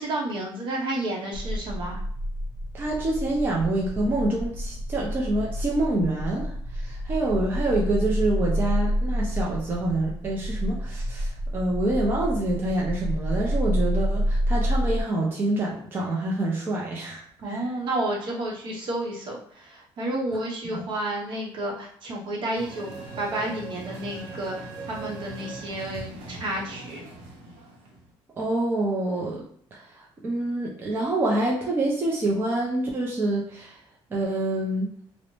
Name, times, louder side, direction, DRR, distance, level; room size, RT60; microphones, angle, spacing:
voice 1, 0.0-2.0 17.4-22.9 23.2-27.0, right 1 dB, 55° right, -2 dB, 0.8 m, -31 dB
sound 1, 1.3-15.0, equal, 60° left, 0.6 m, -28 dB
voice 2, 2.7-6.5 6.7-17.2 17.5-17.6 20.7-20.8 28.4-29.4 29.7-29.8 30.2-33.7 34.1-34.9, right 2 dB, 20° right, -3 dB, 0.4 m, -26 dB
sound 2, 22.5-28.1, right 3 dB, 85° right, 0.8 m, -40 dB
2.5 x 2.0 x 2.9 m, 0.63 s
cardioid pair, 165°, 10 cm